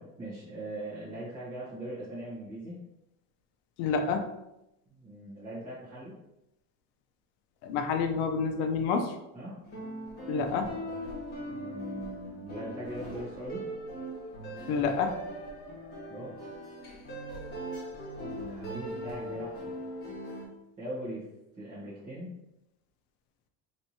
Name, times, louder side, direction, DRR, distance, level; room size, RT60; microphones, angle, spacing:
voice 1, 0.0-2.8 4.9-6.1 9.3-9.6 11.5-13.6 16.1-16.4 18.2-19.8 20.8-21.2 21.6-22.4, right 1 dB, 25° right, -11 dB, 1.3 m, -40 dB
voice 2, 3.8-4.3 7.6-9.1 10.3-10.7 14.7-15.2, left 5 dB, 80° left, 5 dB, 0.6 m, -28 dB
sound 1, 9.6-20.4, equal, 30° left, 1.3 m, -40 dB
3.4 x 3.0 x 2.8 m, 0.88 s
cardioid pair, 155°, 32 cm